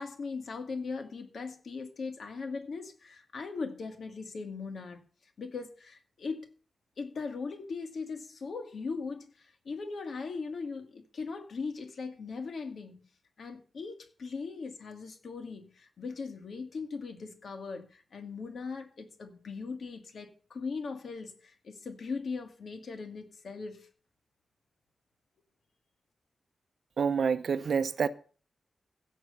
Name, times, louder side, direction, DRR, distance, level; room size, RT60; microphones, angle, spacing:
voice 1, 0.0-5.0 5.4-6.5 7.0-13.0 13.4-23.9, left 4 dB, 60° left, 2.3 m, -39 dB
voice 2, 27.0-28.1, right 6 dB, 60° right, 0.8 m, -27 dB
16.0 x 6.4 x 6.9 m
wide cardioid pair, 150°, 0 cm